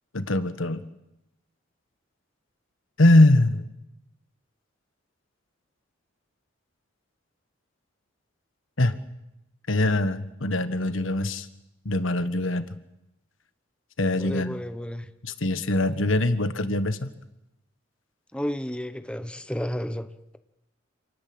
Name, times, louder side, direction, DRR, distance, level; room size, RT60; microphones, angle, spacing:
voice 1, 0.1-0.8 3.0-3.6 8.8-9.0 9.7-11.5 11.8-12.7 14.0-14.6 15.2-17.1, left 1 dB, 80° left, 11 dB, 1.5 m, -22 dB
voice 2, 14.2-15.1 18.3-20.4, equal, 5° left, 10 dB, 1.0 m, -32 dB
27.5 x 19.0 x 8.0 m, 0.89 s
head